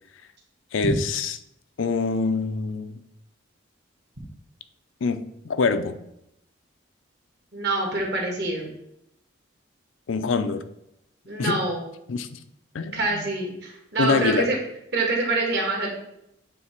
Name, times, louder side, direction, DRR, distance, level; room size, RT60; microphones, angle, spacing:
voice 1, 0.7-1.4 1.8-3.0 5.0-5.9 10.1-10.6 11.4-11.6 12.1-12.4 12.7-13.2 14.0-14.5, left 4 dB, 90° left, 11 dB, 0.5 m, -25 dB
voice 2, 7.5-8.7 11.3-11.8 12.9-14.6 14.9-16.0, right 2 dB, 55° right, 0 dB, 1.7 m, -26 dB
8.6 x 2.9 x 4.5 m, 0.80 s
head